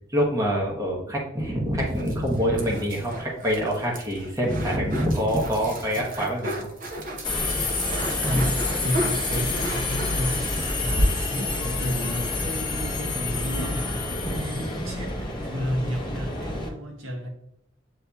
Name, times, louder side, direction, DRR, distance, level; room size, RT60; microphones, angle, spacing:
voice 1, 0.1-6.7 8.2-8.5, equal, 15° right, 0.9 m, -25 dB
sound 1, 1.8-11.1 11.4-11.5 11.8-11.9, right 1 dB, 45° right, 0.7 m, -35 dB
Subway metro underground, 7.2-16.7, left 2 dB, 25° left, 0.8 m, -27 dB
voice 2, 8.2-8.5 8.8-10.4 10.8-14.0 14.4-17.3, equal, 75° right, 0.9 m, -31 dB
8.0 x 2.7 x 2.3 m
head